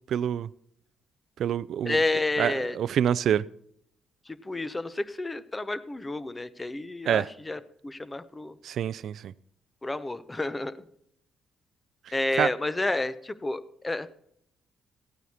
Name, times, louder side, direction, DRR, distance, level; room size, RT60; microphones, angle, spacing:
voice 1, 0.1-0.5 1.4-2.0 2.4-3.4 7.1-7.3 8.6-9.3 12.4-12.5, right 9 dB, 70° right, 0.4 m, -26 dB
voice 2, 1.8-2.8 4.3-8.6 9.8-10.7 12.1-14.2, left 2 dB, 20° left, 0.7 m, -30 dB
15.0 x 9.2 x 4.3 m
cardioid pair, 90°, 0 cm